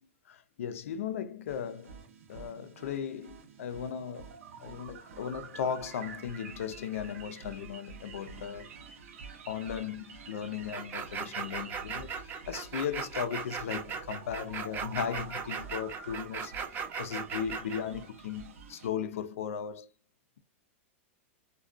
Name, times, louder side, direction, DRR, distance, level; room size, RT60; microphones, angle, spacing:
voice 1, 0.3-2.0 2.3-8.7 9.5-12.1 12.5-19.9, left 8 dB, 85° left, 0.4 m, -37 dB
sound 1, 1.5-18.9, right 5 dB, 85° right, 0.7 m, -48 dB
sound 2, 10.7-17.8, right 6 dB, 25° right, 0.5 m, -37 dB
2.5 x 2.2 x 2.3 m
hypercardioid pair, 135°, 7 cm